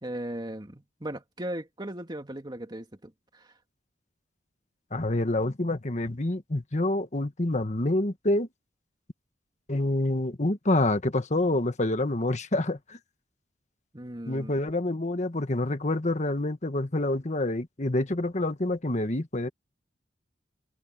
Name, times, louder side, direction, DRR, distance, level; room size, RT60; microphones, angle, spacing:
voice 1, 0.0-3.5 13.9-14.5, right 1 dB, 25° right, 2.4 m, -37 dB
voice 2, 4.9-8.5 9.7-13.0 14.3-19.5, left 1 dB, 40° left, 1.5 m, -27 dB
head